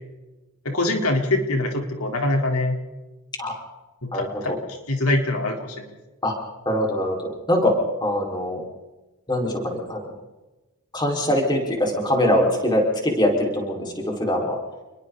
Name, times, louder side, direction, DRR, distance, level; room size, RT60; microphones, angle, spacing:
voice 1, 0.6-2.8 4.0-4.5 4.9-5.9, left 2 dB, 75° left, 2 dB, 4.1 m, -23 dB
voice 2, 4.1-4.6 6.2-6.3 6.7-7.7 8.0-8.6 9.3-10.1 10.9-14.6, left 1 dB, 20° left, 0 dB, 5.1 m, -23 dB
30.0 x 22.0 x 4.1 m, 1.1 s
head